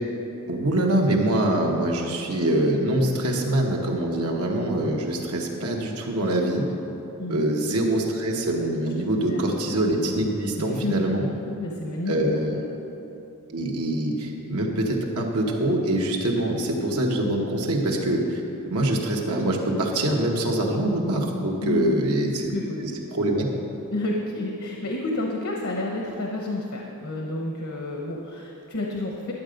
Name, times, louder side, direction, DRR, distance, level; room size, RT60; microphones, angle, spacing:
voice 1, 0.5-6.7 7.3-11.2 12.1-12.6 13.5-18.4 18.7-22.6 22.8-23.5, right 1 dB, 80° right, 0 dB, 1.4 m, -24 dB
voice 2, 10.6-12.1 12.5-12.6 21.6-22.8 23.9-29.3, left 2 dB, 70° left, 0 dB, 1.0 m, -30 dB
11.5 x 7.7 x 5.2 m, 2.9 s
head